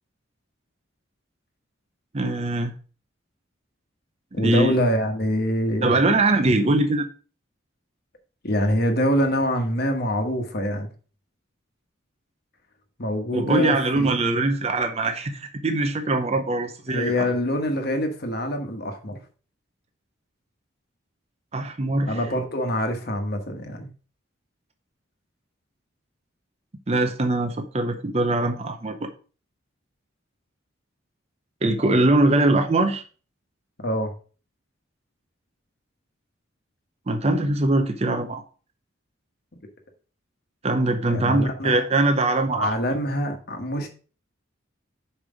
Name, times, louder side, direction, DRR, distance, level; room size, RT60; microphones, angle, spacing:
voice 1, 2.1-2.7 4.4-4.7 5.8-7.1 13.3-17.3 21.5-22.2 26.9-29.1 31.6-33.0 37.1-38.4 40.6-42.7, right 2 dB, 30° right, 6 dB, 0.6 m, -22 dB
voice 2, 4.3-6.1 8.4-10.9 13.0-14.1 16.9-19.2 22.1-23.9 33.8-34.1 41.0-41.8 42.5-43.9, equal, 50° left, 5 dB, 1.2 m, -25 dB
5.5 x 4.9 x 4.9 m, 0.38 s
head